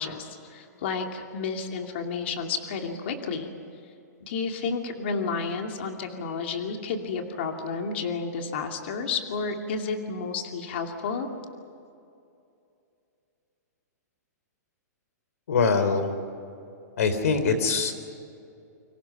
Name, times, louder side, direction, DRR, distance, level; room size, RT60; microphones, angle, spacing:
voice 1, 0.0-3.5 4.2-11.3, left 5 dB, 40° left, 3 dB, 2.5 m, -31 dB
voice 2, 15.5-16.1 17.0-17.9, left 5 dB, 60° left, 9 dB, 3.5 m, -23 dB
29.0 x 25.5 x 5.8 m, 2.6 s
hypercardioid pair, 180°, 9 cm